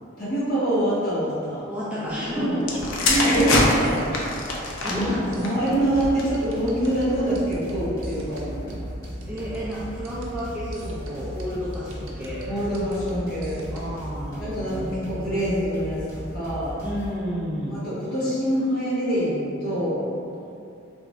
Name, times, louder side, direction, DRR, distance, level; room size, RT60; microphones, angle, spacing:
voice 1, 0.2-1.7 2.3-2.6 3.1-4.1 4.8-8.6 12.4-13.7 14.4-16.8 17.7-20.1, right 1 dB, 45° left, -10 dB, 1.2 m, -25 dB
voice 2, 1.7-2.6 2.9-3.0 3.6-4.0 4.8-5.4 9.3-12.5 13.7-15.5 16.8-17.8 20.4-20.5, equal, 5° right, -9 dB, 0.3 m, -31 dB
sound 1, 2.6-6.4 7.2-7.5, left 2 dB, 75° left, 0.5 m, -25 dB
sound 2, 3.3-14.1, equal, 85° right, 0.6 m, -41 dB
sound 3, 5.9-17.1, equal, 15° left, 1.2 m, -37 dB
3.4 x 2.4 x 3.0 m, 2.5 s
head